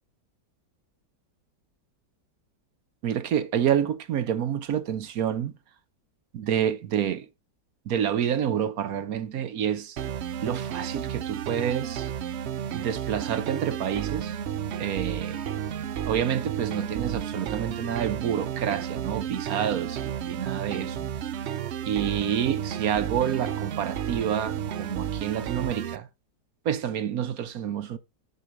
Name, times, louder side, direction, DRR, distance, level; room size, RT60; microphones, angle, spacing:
voice 1, 3.0-5.5 6.3-7.3 7.9-10.0 10.4-12.1 12.7-14.4 14.8-15.4 16.1-21.1 21.8-26.1 26.6-28.0, right 9 dB, 65° right, 1.1 m, -28 dB
sound 1, 10.0-26.0, right 9 dB, 80° right, 0.6 m, -32 dB
7.1 x 4.4 x 6.3 m
omnidirectional pair, 1.9 m